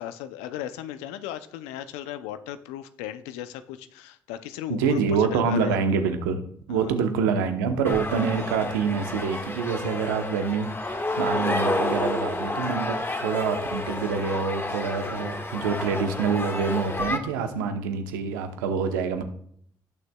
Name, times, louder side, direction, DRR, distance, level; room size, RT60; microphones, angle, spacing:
voice 1, 0.0-5.7 6.7-6.9, left 11 dB, 85° left, 12 dB, 0.5 m, -36 dB
voice 2, 4.7-6.4 6.7-19.2, right 5 dB, 90° right, 7 dB, 0.9 m, -26 dB
sound 1, 7.8-17.2, left 2 dB, 20° left, 1.6 m, -30 dB
17.5 x 6.7 x 2.3 m, 0.65 s
hypercardioid pair, 45°, 10 cm